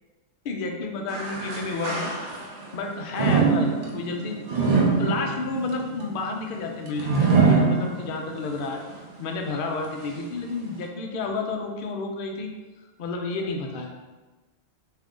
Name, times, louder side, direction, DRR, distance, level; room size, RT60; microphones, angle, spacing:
voice 1, 0.4-2.1 2.7-4.4 5.0-8.8 9.2-12.5 13.0-13.9, left 3 dB, 60° left, 2 dB, 0.6 m, -31 dB
sound 1, 1.1-2.7 3.1-8.4 8.9-9.0 9.8-9.9, right 4 dB, 75° right, 0.3 m, -24 dB
3.7 x 2.7 x 3.6 m, 1.2 s
omnidirectional pair, 1.4 m